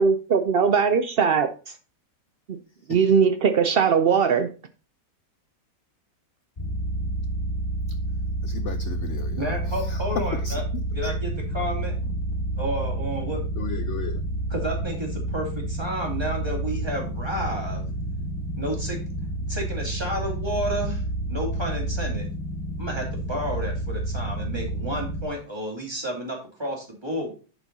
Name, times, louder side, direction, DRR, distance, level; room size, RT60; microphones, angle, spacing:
voice 1, 0.0-1.5 2.5-2.6 2.9-4.5, right 6 dB, 80° right, 0.5 m, -20 dB
sound 1, 6.6-25.2, right 1 dB, 25° left, 2.2 m, -29 dB
voice 2, 8.4-11.1 13.6-14.2, left 7 dB, 60° left, 0.8 m, -35 dB
voice 3, 9.4-10.6 10.9-12.0 12.6-13.5 14.5-17.8 18.6-19.0 19.5-21.0 21.3-22.3 22.8-27.3, right 1 dB, 15° right, 2.8 m, -31 dB
10.5 x 5.3 x 4.1 m
omnidirectional pair, 1.8 m